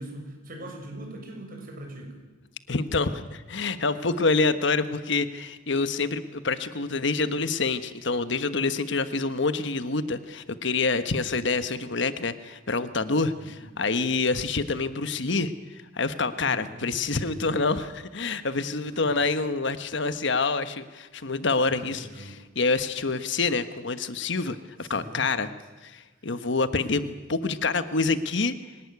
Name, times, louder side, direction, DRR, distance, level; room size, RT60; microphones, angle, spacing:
voice 1, 0.0-2.2 13.4-13.6 16.4-17.5 18.9-19.3 21.7-22.4 24.8-25.3 26.2-26.3 26.9-27.2, right 1 dB, 50° right, 3 dB, 6.9 m, -42 dB
voice 2, 2.7-15.5 15.9-22.1 22.5-25.5 25.8-28.5, left 3 dB, 65° left, 11 dB, 1.3 m, -27 dB
24.0 x 18.5 x 9.6 m, 1.2 s
head